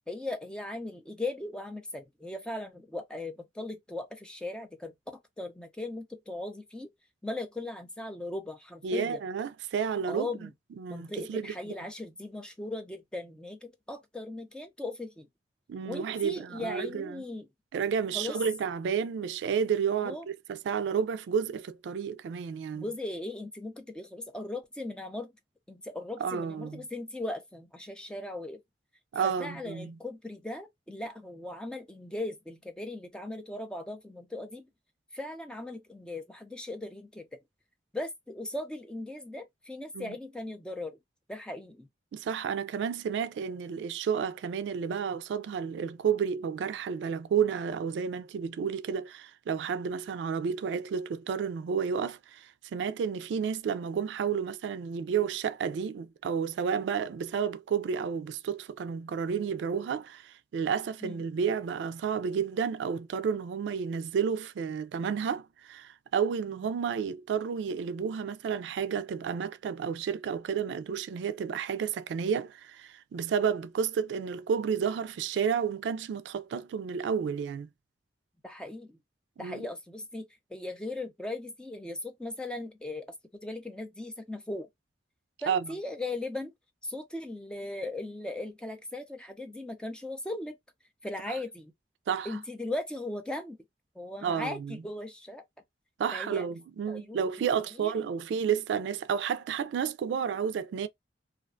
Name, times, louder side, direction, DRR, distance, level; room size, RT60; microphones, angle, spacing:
voice 1, 0.1-4.9 5.4-6.9 7.2-9.2 10.1-10.5 10.9-15.3 15.8-17.5 18.1-18.4 20.0-20.3 22.8-25.3 25.7-28.6 29.2-34.7 35.1-37.3 37.9-41.0 41.3-41.9 61.0-61.2 66.6-66.7 78.4-79.0 79.4-80.3 80.5-83.1 83.4-84.7 85.4-86.5 86.8-90.6 91.0-91.7 92.3-93.6 94.0-95.4 96.1-96.5 96.9-97.2 97.8-97.9, left 2 dB, 5° left, 0.4 m, -38 dB
voice 2, 8.8-10.5 10.8-11.5 15.7-17.2 17.7-22.8 26.2-26.8 29.1-30.0 39.9-40.1 42.1-77.7 79.4-79.7 85.5-85.7 91.3-91.4 92.1-92.3 94.2-94.8 96.0-100.9, right 7 dB, 80° right, 0.3 m, -31 dB
2.4 x 2.2 x 2.4 m
head